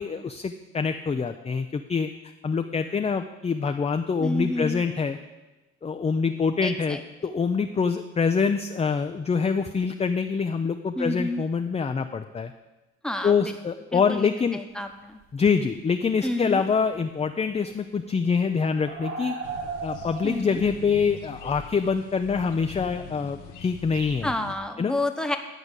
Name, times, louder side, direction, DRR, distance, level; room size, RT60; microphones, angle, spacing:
voice 1, 0.0-2.1 2.4-5.2 5.8-12.5 13.2-14.6 15.3-19.4 19.8-24.3 24.8-25.0, left 5 dB, 20° left, 6 dB, 0.5 m, -25 dB
voice 2, 4.2-4.8 6.6-7.0 11.0-11.4 13.0-13.5 13.9-15.2 16.2-16.6 20.2-20.6 24.2-25.4, left 1 dB, ahead, 5 dB, 1.0 m, -30 dB
sound 1, 15.2-15.3 15.7-15.9 16.8-17.0 17.4-20.7, right 5 dB, 45° right, 2.0 m, -37 dB
sound 2, 19.4-24.6, left 7 dB, 90° left, 0.9 m, -43 dB
11.0 x 4.9 x 8.2 m, 1.1 s
cardioid pair, 90°, 30 cm